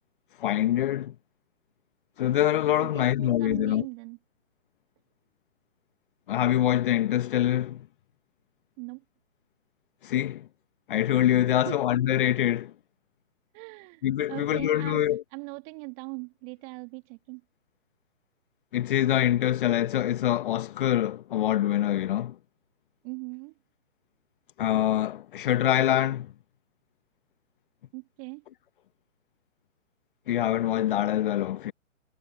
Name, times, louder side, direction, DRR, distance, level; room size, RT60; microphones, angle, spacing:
voice 1, 0.4-1.1 2.2-3.9 6.3-7.9 10.0-10.5 10.9-12.7 14.0-15.2 18.7-22.3 24.6-26.3 30.3-31.7, left 12 dB, 40° left, 1.5 m, -25 dB
voice 2, 2.8-4.2 8.8-9.0 11.6-11.8 13.5-14.0 14.3-15.0 15.3-17.4 23.0-23.5 27.9-28.4, right 38 dB, 25° right, 2.6 m, -40 dB
figure-of-eight pair, 135°, 39 cm